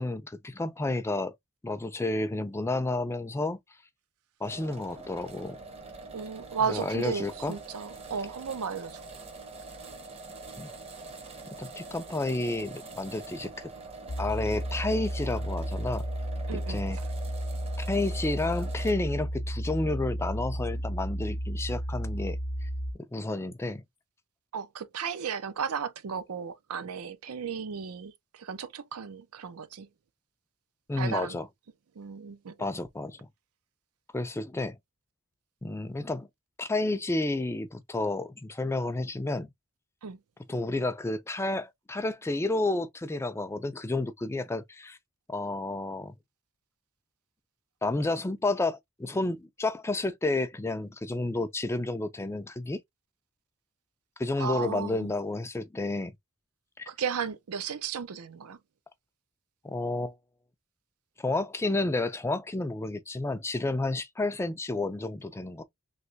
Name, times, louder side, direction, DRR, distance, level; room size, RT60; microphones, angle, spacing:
voice 1, 0.0-1.3 1.6-3.6 4.4-5.6 6.7-7.6 10.6-10.7 11.6-13.7 14.2-16.0 16.5-17.0 17.8-22.7 23.1-23.8 30.9-31.5 32.6-33.2 34.1-34.8 35.6-36.3 36.6-39.5 40.5-45.0 45.3-46.1 47.8-52.8 54.2-56.1 56.8-56.9 59.6-60.2 61.2-65.6, left 2 dB, 10° left, 0.3 m, -31 dB
sound 1, 4.4-19.1, right 3 dB, 25° right, 0.7 m, -44 dB
voice 2, 6.1-9.0 16.5-17.0 24.5-29.9 31.0-31.4 32.0-32.5 40.0-40.2 54.4-55.1 56.9-58.6, right 6 dB, 75° right, 0.5 m, -34 dB
sound 2, 14.1-22.9, equal, 85° left, 0.7 m, -33 dB
3.2 x 2.8 x 2.6 m
head